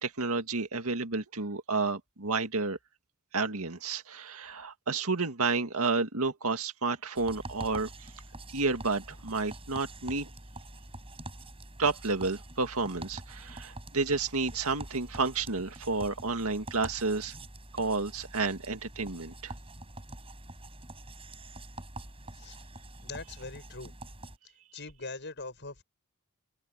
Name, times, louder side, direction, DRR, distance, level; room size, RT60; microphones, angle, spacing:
voice 1, 0.0-2.8 3.3-7.9 8.5-10.3 11.8-17.3 17.7-19.5, right 3 dB, 80° right, 2.0 m, -31 dB
sound 1, 7.2-24.4, right 2 dB, 25° right, 5.9 m, -45 dB
voice 2, 23.0-23.9 24.7-25.8, left 3 dB, 55° left, 6.8 m, -42 dB
open air
head